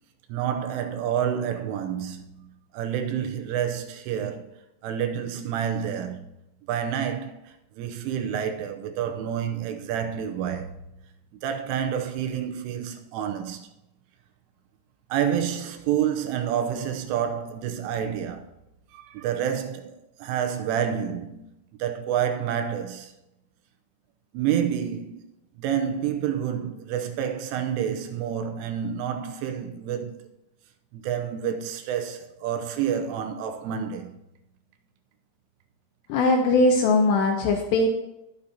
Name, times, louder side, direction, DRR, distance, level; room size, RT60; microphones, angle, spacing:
voice 1, 0.3-6.3 6.7-10.7 11.4-13.7 15.1-18.5 18.9-23.1 24.3-25.3 25.6-30.3 30.9-34.2, right 9 dB, 85° right, 3.2 m, -29 dB
voice 2, 36.1-37.9, left 2 dB, 80° left, 2.5 m, -20 dB
20.5 x 7.2 x 2.8 m
omnidirectional pair, 5.9 m